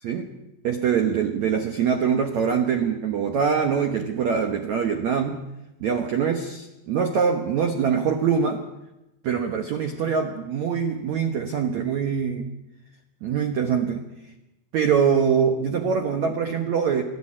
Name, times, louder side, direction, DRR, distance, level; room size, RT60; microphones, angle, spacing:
voice 1, 0.6-5.4 5.8-8.6 9.2-12.5 13.2-14.1 14.7-17.0, right 6 dB, 80° right, 6 dB, 1.6 m, -23 dB
29.5 x 11.0 x 8.7 m, 0.94 s
omnidirectional pair, 5.2 m